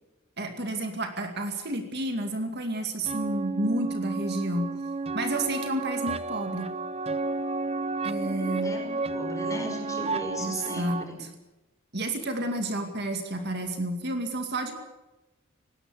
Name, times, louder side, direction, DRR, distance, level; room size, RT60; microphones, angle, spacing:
voice 1, 0.4-4.7 5.1-6.7 8.0-8.7 10.4-11.3 11.9-14.7, right 1 dB, 50° right, 5 dB, 2.3 m, -30 dB
sound 1, 3.1-11.0, right 3 dB, 30° right, 0.7 m, -32 dB
voice 2, 8.2-11.2, equal, 15° left, 3 dB, 5.1 m, -37 dB
19.0 x 18.0 x 8.3 m, 1.0 s
head